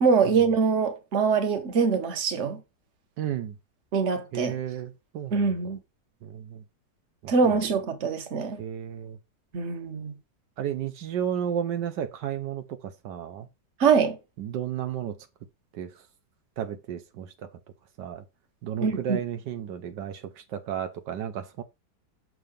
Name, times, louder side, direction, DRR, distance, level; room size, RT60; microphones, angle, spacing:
voice 1, 0.0-2.6 3.9-4.6 5.3-5.8 7.3-8.6 9.5-10.1 13.8-14.2 18.8-19.2, right 5 dB, 45° right, 1.4 m, -24 dB
voice 2, 3.2-3.5 4.3-5.5 6.2-6.6 7.2-7.5 8.6-9.2 10.6-13.5 14.4-15.1 15.7-15.9 16.6-17.3 18.0-18.2 18.6-20.2 20.5-21.6, right 9 dB, 80° right, 1.4 m, -33 dB
6.3 x 3.8 x 5.1 m
omnidirectional pair, 1.9 m